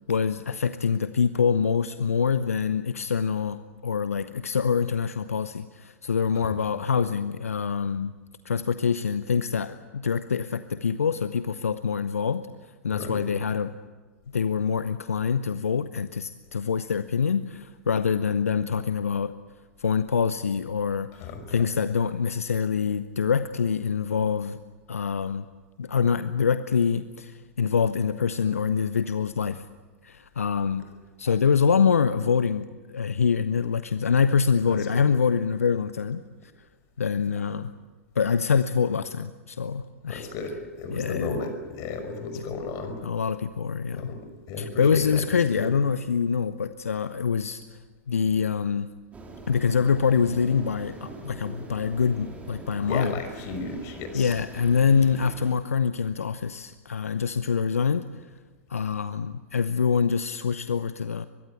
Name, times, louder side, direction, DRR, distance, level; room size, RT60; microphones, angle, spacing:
voice 1, 0.1-8.1 8.4-12.5 12.8-13.7 14.3-19.3 19.8-24.6 24.9-25.5 25.8-29.6 30.0-30.8 31.2-36.5 37.0-37.7 38.1-40.3 40.9-41.4 42.4-42.5 43.0-44.2 44.6-47.8 48.1-48.9 49.5-53.2 54.1-58.3 58.7-61.2, left 6 dB, 75° left, 12 dB, 0.8 m, -25 dB
voice 2, 12.9-13.2 21.2-21.6 34.7-34.8 40.1-43.0 43.9-44.2 44.5-45.2 45.5-45.7 52.8-54.3, left 4 dB, 40° left, 7 dB, 5.6 m, -34 dB
sound 1, 49.1-55.5, right 2 dB, 15° right, 4.7 m, -43 dB
23.5 x 22.5 x 8.3 m, 1.4 s
figure-of-eight pair, 95°, 8 cm